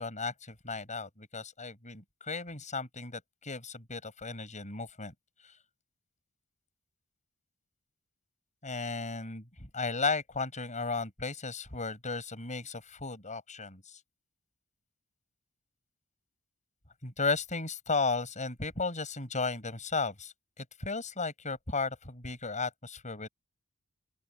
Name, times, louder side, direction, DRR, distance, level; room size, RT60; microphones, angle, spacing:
voice 1, 0.0-5.1 5.4-5.5 8.6-14.0 17.0-23.3, left 4 dB, 35° left, 7.6 m, -35 dB
open air
head